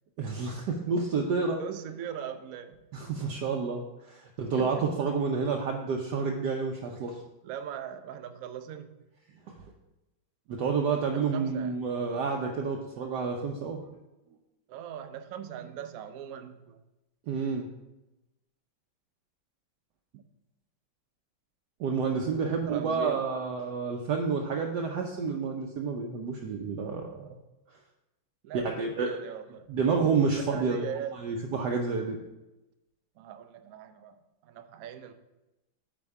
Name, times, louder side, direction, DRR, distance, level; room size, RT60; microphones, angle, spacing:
voice 1, 0.2-1.6 2.9-7.2 9.5-9.6 10.5-13.8 17.3-17.7 21.8-27.3 28.5-29.1 29.7-30.8 31.2-32.2, right 5 dB, 70° right, 1 dB, 1.1 m, -29 dB
voice 2, 1.6-2.8 4.5-4.9 7.4-9.0 11.0-11.8 14.7-16.8 20.1-20.2 22.2-23.3 28.4-29.7 30.4-31.1 33.2-35.1, right 9 dB, 90° right, 9 dB, 0.7 m, -40 dB
8.7 x 4.2 x 4.7 m, 0.98 s
omnidirectional pair, 2.2 m